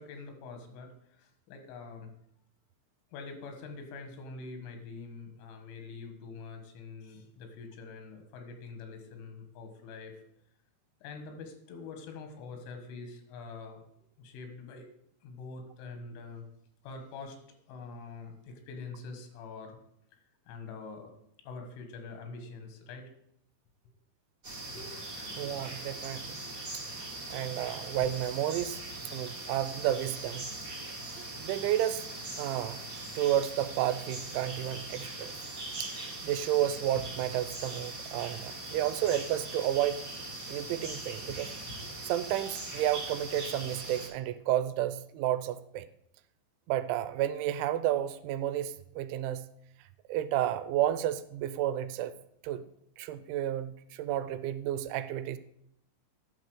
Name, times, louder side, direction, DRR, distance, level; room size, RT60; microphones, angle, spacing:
voice 1, 0.0-2.1 3.1-10.2 11.0-13.8 14.2-14.9 15.2-16.5 16.8-17.4 17.7-19.8 20.5-21.1 21.4-23.1 24.8-25.5, left 4 dB, 90° left, 5 dB, 3.9 m, -45 dB
sound 1, 24.4-44.1, right 2 dB, 40° right, 1.2 m, -41 dB
voice 2, 25.4-26.4 26.7-26.8 27.3-28.8 29.1-30.5 31.2-32.0 32.4-32.8 33.2-35.4 35.8-35.9 36.2-40.0 40.5-41.5 42.0-45.9 46.7-49.5 50.1-52.1 52.4-52.6 53.0-55.4, right 12 dB, 85° right, 13 dB, 2.9 m, -31 dB
10.5 x 6.6 x 4.8 m, 0.73 s
omnidirectional pair, 5.5 m